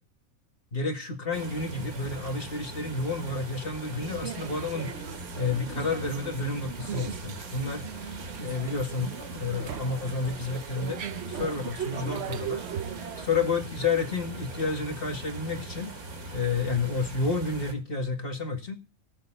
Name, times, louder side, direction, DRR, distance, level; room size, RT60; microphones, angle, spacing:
voice 1, 0.7-4.9 5.3-7.8 8.4-12.7 13.3-15.9 16.3-18.8, left 4 dB, 40° left, 5 dB, 2.1 m, -30 dB
sound 1, 1.3-17.7, right 2 dB, 85° right, 2.6 m, -41 dB
sound 2, 4.0-13.3, right 9 dB, 55° right, 1.0 m, -39 dB
19.0 x 7.0 x 3.8 m, 0.36 s
omnidirectional pair, 1.5 m